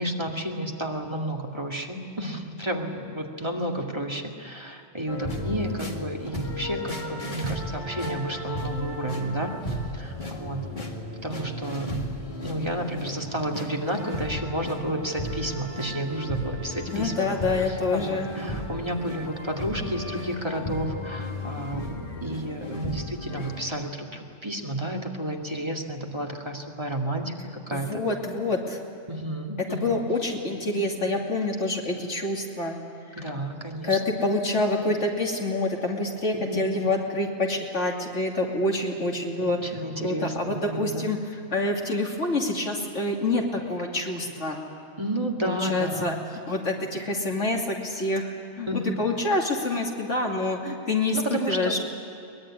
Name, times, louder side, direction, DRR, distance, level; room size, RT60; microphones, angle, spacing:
voice 1, 0.0-10.7 11.2-11.9 12.4-27.3 27.7-28.0 29.1-30.0 33.2-34.0 36.3-37.0 39.6-41.1 45.0-46.2 48.7-48.9 51.1-51.8, right 1 dB, 20° right, 0 dB, 2.3 m, -31 dB
sound 1, 5.1-23.6, left 1 dB, 40° left, 2.3 m, -34 dB
voice 2, 16.9-18.3 27.7-28.8 29.7-32.8 33.8-39.6 40.0-44.6 45.4-46.2 46.5-51.8, left 2 dB, 75° left, 0 dB, 3.1 m, -27 dB
22.5 x 21.5 x 9.8 m, 2.8 s
omnidirectional pair, 1.2 m